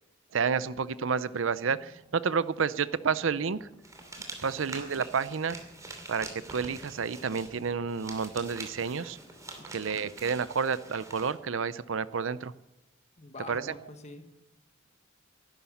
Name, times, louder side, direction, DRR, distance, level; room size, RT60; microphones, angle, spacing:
voice 1, 0.3-3.7 4.4-5.6 6.1-9.2 9.7-12.5 13.5-13.7, right 5 dB, 70° right, 16 dB, 0.6 m, -30 dB
sound 1, 1.0-10.0, equal, 15° left, 1.4 m, -57 dB
sound 2, 3.8-11.3, right 2 dB, 15° right, 2.7 m, -45 dB
voice 2, 13.2-14.2, left 2 dB, 35° left, 7 dB, 1.7 m, -45 dB
11.5 x 11.5 x 9.7 m, 0.95 s
head